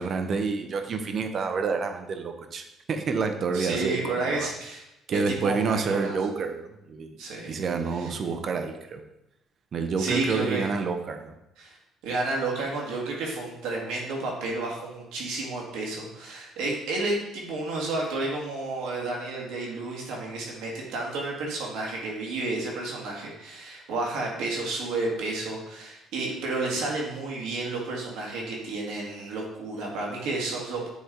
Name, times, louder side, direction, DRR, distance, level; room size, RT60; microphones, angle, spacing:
voice 1, 0.0-4.5 5.1-7.1 7.5-9.0 9.7-11.3, right 5 dB, 50° right, 6 dB, 0.7 m, -28 dB
voice 2, 3.5-4.8 5.1-6.2 7.2-7.6 7.9-8.1 10.0-10.7 11.6-11.8 12.0-30.9, right 2 dB, 85° right, -1 dB, 1.7 m, -31 dB
8.0 x 3.2 x 3.8 m, 0.85 s
cardioid pair, 100°, 0 cm